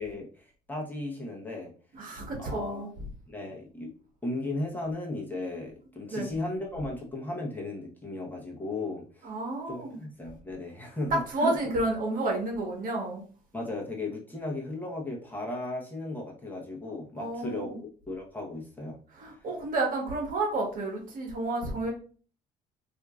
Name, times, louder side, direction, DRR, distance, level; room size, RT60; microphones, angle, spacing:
voice 1, 0.0-1.7 2.4-2.9 3.3-3.9 4.2-9.3 9.7-11.6 13.5-19.0, left 2 dB, 10° left, -2 dB, 0.9 m, -36 dB
voice 2, 2.0-2.9 6.1-6.3 9.2-10.0 11.3-13.2 17.2-17.8 19.2-21.9, right 2 dB, 55° right, 1 dB, 1.3 m, -31 dB
4.4 x 2.6 x 2.3 m, 0.41 s
cardioid pair, 110°, 17 cm